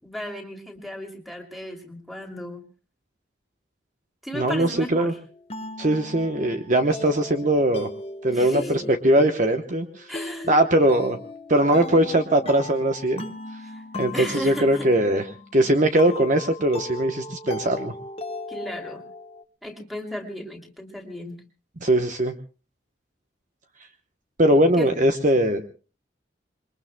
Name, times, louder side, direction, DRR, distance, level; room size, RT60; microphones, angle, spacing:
voice 1, 0.0-2.6 4.2-5.2 8.3-8.8 10.1-10.5 13.7-13.8 14.1-14.9 18.5-19.0 19.6-21.4 24.8-24.9, equal, ahead, 2 dB, 2.8 m, -35 dB
voice 2, 4.3-5.1 5.8-7.9 8.2-10.1 10.5-11.2 11.5-13.2 13.9-15.2 15.5-17.9 21.8-22.3 24.4-25.7, right 1 dB, 40° right, 6 dB, 1.0 m, -20 dB
sound 1, 4.7-19.4, left 2 dB, 30° left, 1.1 m, -38 dB
27.0 x 22.5 x 2.2 m, 0.37 s
head